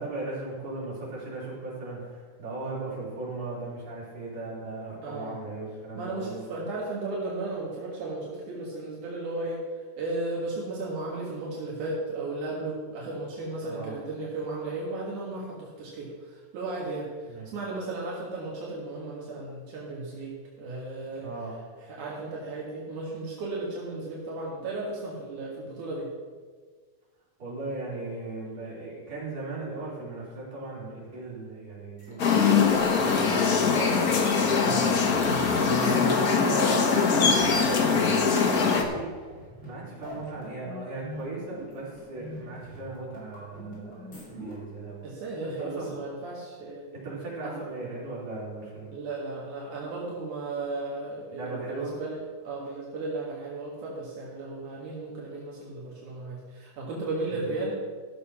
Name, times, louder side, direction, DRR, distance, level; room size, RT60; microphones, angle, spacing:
voice 1, 0.0-6.5 13.6-14.0 17.3-17.5 21.2-21.6 27.4-35.3 35.9-39.2 39.6-45.1 45.4-46.0 46.9-49.0 51.3-51.9 57.2-57.5, right 2 dB, 60° right, -7 dB, 4.9 m, -37 dB
voice 2, 5.0-5.3 6.0-9.6 10.0-21.3 21.9-26.1 34.6-34.9 35.2-36.2 45.0-46.8 47.4-47.6 48.9-57.8, right 2 dB, 85° right, -4 dB, 3.2 m, -35 dB
sound 1, 32.0-44.5, left 1 dB, 40° left, 4.2 m, -43 dB
sound 2, 32.2-38.8, left 5 dB, 70° left, 0.8 m, -22 dB
14.0 x 6.8 x 5.9 m, 1.5 s
omnidirectional pair, 3.4 m